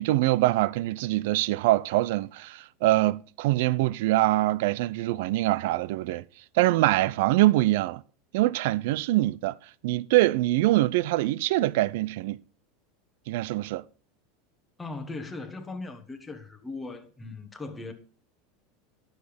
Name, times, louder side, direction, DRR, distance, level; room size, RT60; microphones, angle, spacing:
voice 1, 0.0-6.2 6.5-8.0 8.3-9.6 9.8-12.4 13.3-13.8, right 17 dB, 65° right, 0.5 m, -24 dB
voice 2, 14.8-17.9, left 3 dB, 10° left, 1.2 m, -38 dB
11.5 x 6.4 x 5.1 m
supercardioid pair, 165°, 0 cm